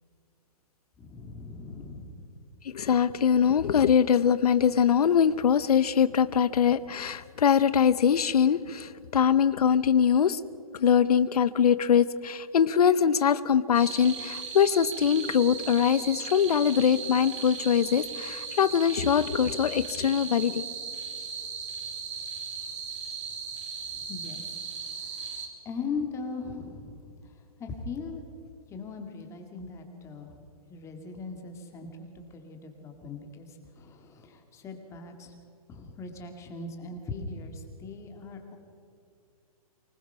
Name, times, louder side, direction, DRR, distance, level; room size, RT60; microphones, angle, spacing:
voice 1, 1.0-2.3 24.1-24.4 25.0-27.1 27.6-28.2 28.7-30.4 30.7-35.3 35.7-38.6, left 4 dB, 15° left, 4 dB, 2.2 m, -39 dB
voice 2, 2.6-10.4 10.7-20.7, left 8 dB, 85° left, 15 dB, 0.7 m, -23 dB
sound 1, 13.7-25.5, right 5 dB, 55° right, 4.2 m, -37 dB
25.0 x 19.5 x 5.6 m, 2.5 s
hypercardioid pair, 155°, 19 cm